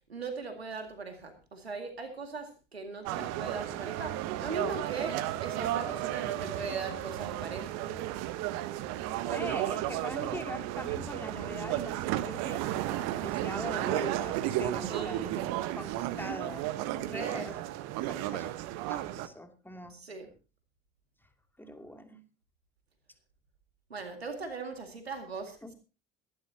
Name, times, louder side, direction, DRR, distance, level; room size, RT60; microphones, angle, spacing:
voice 1, 0.1-8.2 14.9-15.4 17.0-17.5 19.9-20.3 23.9-25.7, right 4 dB, 90° right, 6 dB, 2.2 m, -39 dB
sound 1, 3.1-19.3, right 14 dB, 60° right, 1.2 m, -33 dB
voice 2, 9.2-15.5 15.7-16.7 17.1-17.6 18.1-18.6 18.9-20.0 21.6-22.2 25.6-25.7, left 1 dB, 5° left, 5 dB, 2.7 m, -42 dB
22.5 x 11.5 x 2.8 m, 0.32 s
figure-of-eight pair, 60°, 30 cm